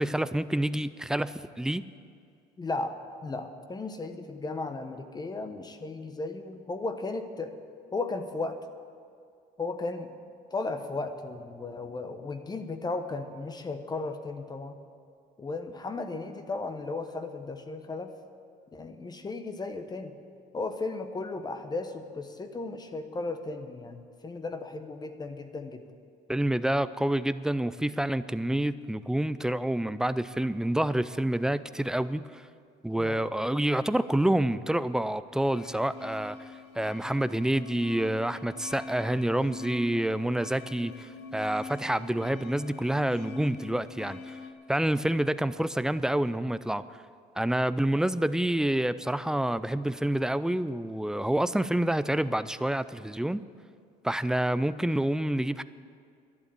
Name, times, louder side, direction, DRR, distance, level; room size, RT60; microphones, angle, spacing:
voice 1, 0.0-1.8 26.3-32.4 32.8-36.5 36.7-44.4 44.7-46.8 47.4-53.4 54.0-55.6, right 1 dB, 5° right, 14 dB, 0.4 m, -28 dB
voice 2, 2.6-3.0 3.2-7.5 7.9-8.6 9.6-10.1 10.5-14.7 15.4-18.1 18.7-20.2 20.5-25.8 33.0-33.3, left 3 dB, 25° left, 8 dB, 1.0 m, -35 dB
sound 1, 35.5-44.5, left 3 dB, 85° left, 1.1 m, -43 dB
11.5 x 11.0 x 8.4 m, 2.3 s
cardioid pair, 110°, 17 cm